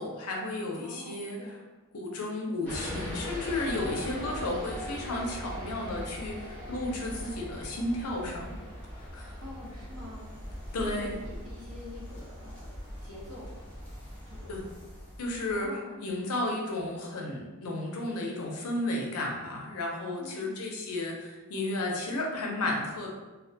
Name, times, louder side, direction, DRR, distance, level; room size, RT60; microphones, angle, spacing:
voice 1, 0.0-1.4 1.9-8.6 8.9-9.3 10.7-11.2 14.5-14.6 15.2-15.7 16.0-23.1, left 2 dB, 80° left, 0 dB, 0.5 m, -33 dB
voice 2, 0.8-1.6 9.4-10.3 10.8-13.5 14.3-14.5 15.5-16.1 20.2-20.7, left 2 dB, 70° right, -6 dB, 0.9 m, -46 dB
sound 1, 2.6-15.7, equal, 5° left, 0.6 m, -41 dB
2.3 x 2.1 x 2.6 m, 1.2 s
head